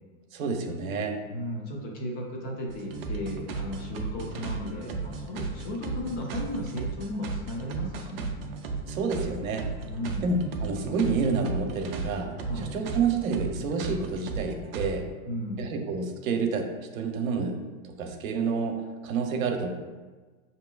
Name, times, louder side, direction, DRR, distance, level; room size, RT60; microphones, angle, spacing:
voice 1, 0.3-1.2 8.9-9.7 10.2-15.1 15.6-19.7, right 4 dB, 75° right, 4 dB, 0.8 m, -29 dB
voice 2, 1.3-8.3 9.9-10.3 12.4-12.7 15.2-15.7, left 1 dB, 20° left, -1 dB, 0.5 m, -35 dB
sound 1, 2.7-14.9, right 4 dB, 45° right, 0.5 m, -35 dB
5.9 x 2.8 x 2.3 m, 1.3 s
supercardioid pair, 155°, 42 cm